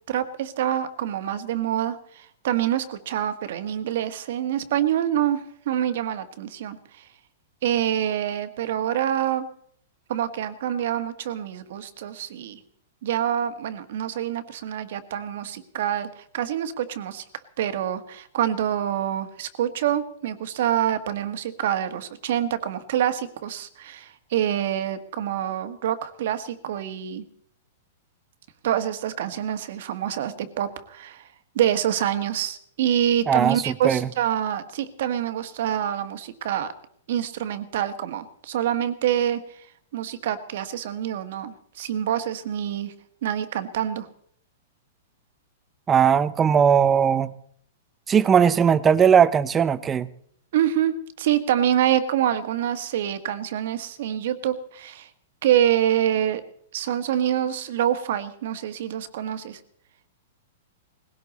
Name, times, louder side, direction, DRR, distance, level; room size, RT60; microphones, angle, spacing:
voice 1, 0.1-7.0 7.6-9.5 10.1-12.6 13.0-17.2 17.6-27.2 28.6-31.2 31.5-36.7 37.1-39.7 39.9-42.9 43.2-44.1 50.5-55.1 55.4-56.4 56.7-59.6, right 10 dB, 55° right, 10 dB, 1.3 m, -26 dB
voice 2, 33.3-34.1 45.9-47.3 48.1-50.1, right 7 dB, 15° right, 16 dB, 0.6 m, -19 dB
20.0 x 16.5 x 4.1 m, 0.64 s
supercardioid pair, 170°, 0 cm